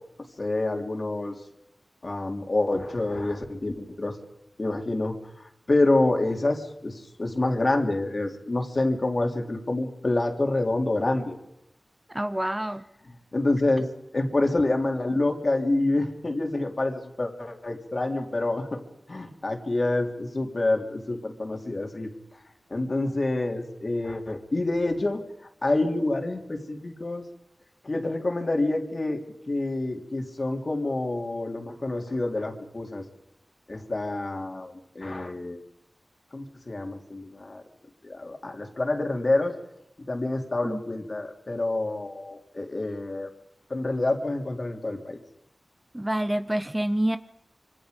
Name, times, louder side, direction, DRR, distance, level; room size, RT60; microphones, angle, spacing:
voice 1, 0.4-1.4 2.0-4.2 4.6-5.2 5.7-11.4 13.3-13.9 14.1-18.8 19.1-22.1 22.7-25.2 25.6-27.2 27.8-33.0 33.7-35.6 36.3-37.6 38.0-39.5 40.1-43.3 43.7-45.2, left 2 dB, 50° left, 3 dB, 3.3 m, -27 dB
voice 2, 12.1-12.8 40.6-40.8 45.9-47.2, right 1 dB, 15° right, 11 dB, 0.8 m, -27 dB
25.5 x 24.5 x 5.2 m, 0.81 s
wide cardioid pair, 55°, 0 cm